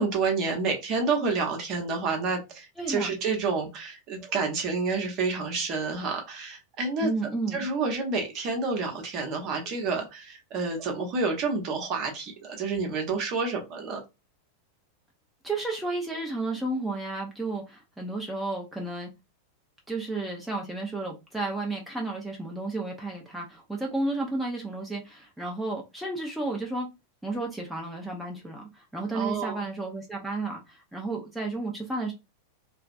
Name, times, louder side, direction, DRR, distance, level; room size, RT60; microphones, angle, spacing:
voice 1, 0.0-7.1 7.5-14.0 29.1-29.6, right 4 dB, 35° right, 0.9 m, -29 dB
voice 2, 2.8-3.2 7.0-7.6 15.4-19.1 19.9-26.9 27.2-32.1, right 2 dB, 5° right, 0.6 m, -32 dB
3.3 x 2.0 x 2.4 m
figure-of-eight pair, 90°, 0 cm